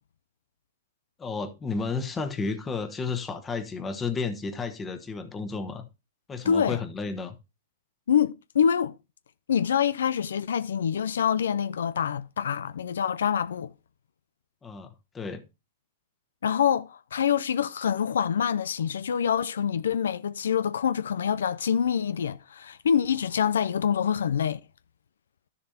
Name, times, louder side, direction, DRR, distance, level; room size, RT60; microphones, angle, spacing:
voice 1, 1.2-5.9 6.3-7.4 14.6-15.4, left 4 dB, 20° left, 1.2 m, -32 dB
voice 2, 6.4-6.8 8.1-8.9 9.5-13.7 16.4-24.6, left 8 dB, 85° left, 0.4 m, -26 dB
12.0 x 6.9 x 2.8 m
hypercardioid pair, 125°, 0 cm